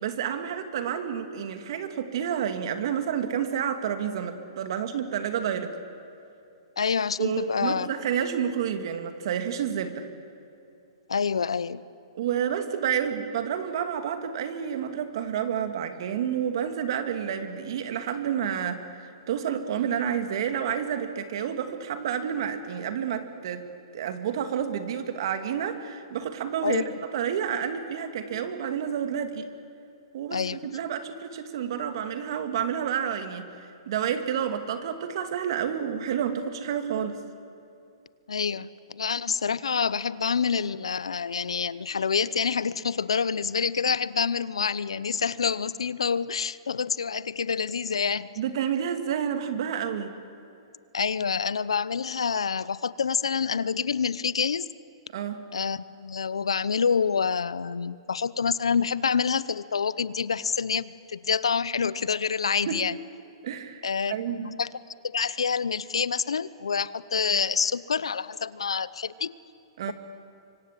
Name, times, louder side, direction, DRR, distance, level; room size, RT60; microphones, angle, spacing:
voice 1, 0.0-5.8 7.2-10.1 12.2-23.6 23.9-29.5 30.1-37.2 48.4-50.1 55.1-55.4 62.7-62.8 63.4-64.6 69.8-69.9, right 8 dB, 60° right, 7 dB, 2.4 m, -29 dB
voice 2, 6.8-7.9 11.1-11.8 26.6-26.8 30.3-30.6 38.3-48.3 50.9-54.7 55.5-63.0 63.8-64.7 65.0-69.3, left 6 dB, 90° left, 18 dB, 0.8 m, -27 dB
26.0 x 24.5 x 7.6 m, 2.6 s
hypercardioid pair, 130°, 3 cm